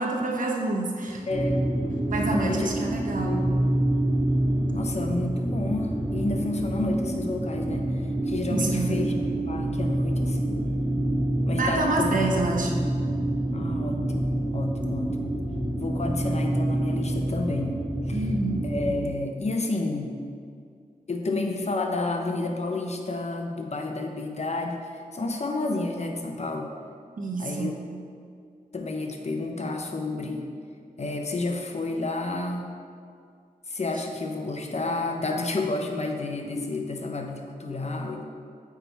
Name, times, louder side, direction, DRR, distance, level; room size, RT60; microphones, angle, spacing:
voice 1, 0.0-1.2 2.1-3.3 8.5-9.0 11.6-12.7 18.1-18.6 27.2-27.7, right 2 dB, 65° right, 0 dB, 0.9 m, -27 dB
voice 2, 1.3-1.7 2.3-2.7 3.2-3.5 4.7-9.2 9.5-10.6 11.5-12.2 13.5-15.4 15.8-18.3 18.6-20.2 21.1-26.7 27.4-27.7 28.7-30.5 31.0-32.7 33.7-38.3, left 2 dB, 50° left, 3 dB, 0.8 m, -30 dB
sound 1, 1.3-19.1, right 1 dB, 25° right, 0.9 m, -27 dB
8.2 x 3.5 x 4.5 m, 2.2 s
wide cardioid pair, 75°, 15 cm